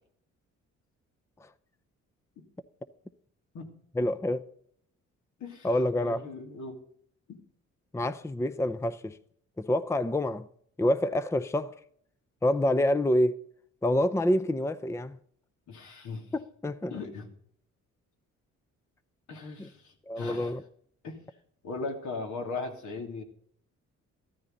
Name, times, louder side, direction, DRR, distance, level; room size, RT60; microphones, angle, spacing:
voice 1, 4.0-4.4 5.6-6.2 7.9-9.2 9.6-10.5 10.8-11.7 12.4-13.4 13.8-15.2 16.3-16.9 19.6-19.7 20.1-20.6, left 1 dB, 10° left, 0.6 m, -27 dB
voice 2, 6.0-6.8 7.3-7.4 15.7-16.3 16.9-17.3 19.3-20.6 21.0-21.2 21.6-23.2, left 3 dB, 75° left, 2.8 m, -38 dB
14.0 x 13.0 x 4.0 m
cardioid pair, 90°, 30 cm